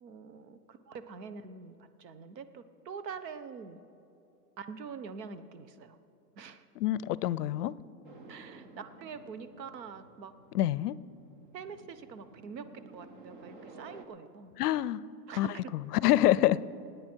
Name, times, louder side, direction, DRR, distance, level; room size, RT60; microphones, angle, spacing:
voice 1, 0.0-3.8 4.6-6.0 6.4-6.6 8.3-10.3 11.5-14.5 15.3-15.7, right 6 dB, 90° right, 11 dB, 1.2 m, -45 dB
voice 2, 6.8-7.7 10.5-11.0 14.6-15.0 15.4-15.5 16.0-16.6, left 14 dB, 70° left, 20 dB, 0.6 m, -26 dB
sound 1, 8.0-14.1, right 2 dB, 30° right, 0.7 m, -53 dB
26.0 x 9.3 x 4.6 m, 2.8 s
supercardioid pair, 180°, 48 cm